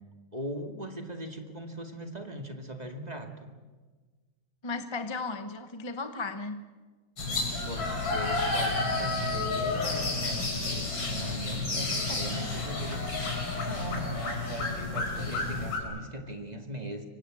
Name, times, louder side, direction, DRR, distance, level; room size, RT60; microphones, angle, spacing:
voice 1, 0.3-3.5 7.6-17.1, right 1 dB, 20° right, 5 dB, 2.1 m, -39 dB
voice 2, 4.6-6.7, left 3 dB, 20° left, 8 dB, 0.7 m, -35 dB
sound 1, 7.2-15.8, left 3 dB, 75° left, 5.8 m, -31 dB
26.5 x 24.0 x 7.7 m, 1.4 s
omnidirectional pair, 2.2 m